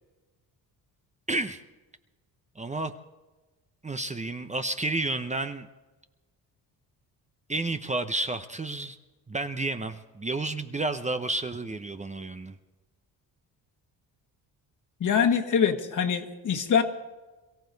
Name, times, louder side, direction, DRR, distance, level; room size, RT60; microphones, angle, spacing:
voice 1, 1.3-1.6 2.6-2.9 3.8-5.7 7.5-9.0 9.3-12.5, right 2 dB, 20° right, 8 dB, 0.7 m, -31 dB
voice 2, 15.0-16.8, left 7 dB, 50° left, 6 dB, 1.7 m, -24 dB
23.0 x 15.0 x 4.0 m, 1.2 s
cardioid pair, 105°, 39 cm